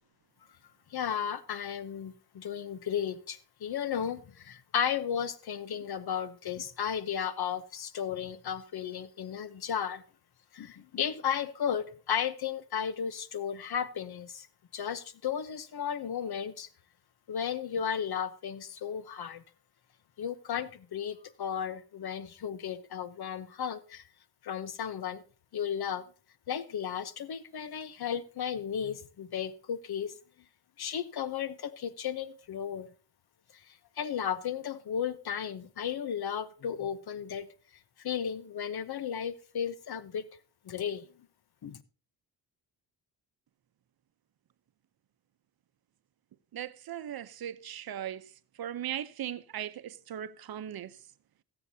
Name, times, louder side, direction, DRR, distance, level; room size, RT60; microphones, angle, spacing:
voice 1, 0.9-10.0 10.5-14.5 14.7-16.7 17.3-19.4 20.2-24.1 24.4-25.2 25.5-26.1 26.5-30.1 30.8-32.9 33.5-37.5 38.0-40.3 40.6-41.1 41.6-41.8, left 8 dB, 60° left, 0.9 m, -34 dB
voice 2, 46.5-48.3 48.6-51.0, right 10 dB, 60° right, 0.8 m, -38 dB
21.0 x 7.9 x 2.8 m
cardioid pair, 75°, 42 cm